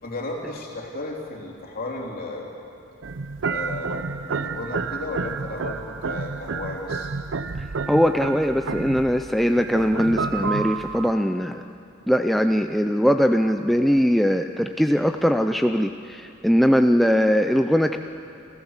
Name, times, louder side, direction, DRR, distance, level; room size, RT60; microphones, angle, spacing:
voice 1, 0.0-2.5 3.4-7.1, left 2 dB, 45° left, -1 dB, 3.5 m, -34 dB
sound 1, 3.0-11.1, right 4 dB, 65° right, 0.6 m, -30 dB
voice 2, 7.6-11.6 12.1-18.0, equal, ahead, 6 dB, 0.4 m, -21 dB
29.5 x 14.5 x 7.3 m, 2.7 s
head